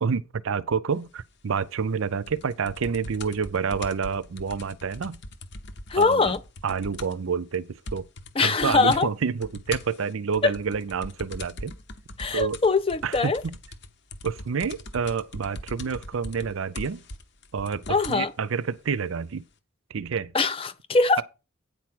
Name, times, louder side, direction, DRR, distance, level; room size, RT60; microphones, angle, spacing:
voice 1, 0.0-5.2 6.0-6.3 6.6-8.1 8.4-11.7 12.3-12.6 13.0-13.6 14.2-17.0 17.5-19.4 19.9-20.3, right 6 dB, 65° right, 0.5 m, -28 dB
sound 1, 2.3-7.3 7.5-7.6 7.9-8.3 8.6-9.1 9.4-18.2 19.0-19.1, left 2 dB, 50° left, 0.9 m, -40 dB
voice 2, 5.9-6.4 8.4-9.1 10.4-10.5 12.2-13.4 17.9-18.3 20.3-21.2, left 4 dB, 25° left, 0.4 m, -22 dB
9.2 x 4.8 x 6.0 m
head